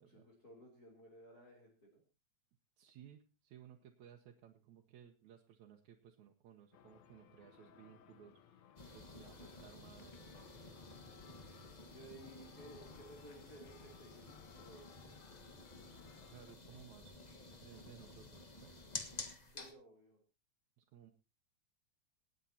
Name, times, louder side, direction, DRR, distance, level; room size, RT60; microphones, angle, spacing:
voice 1, 0.1-2.0 11.9-15.0 19.5-20.2, right 1 dB, 30° left, -2 dB, 3.7 m, -57 dB
voice 2, 2.8-8.7 8.9-10.2 16.2-17.2 17.6-18.7 20.8-21.1, right 9 dB, 80° right, 1 dB, 2.4 m, -59 dB
sound 1, 6.7-16.6, left 9 dB, 75° left, 2.0 m, -63 dB
sound 2, 8.8-19.7, left 2 dB, 50° left, 0.4 m, -52 dB
26.5 x 9.1 x 2.8 m, 0.29 s
omnidirectional pair, 3.3 m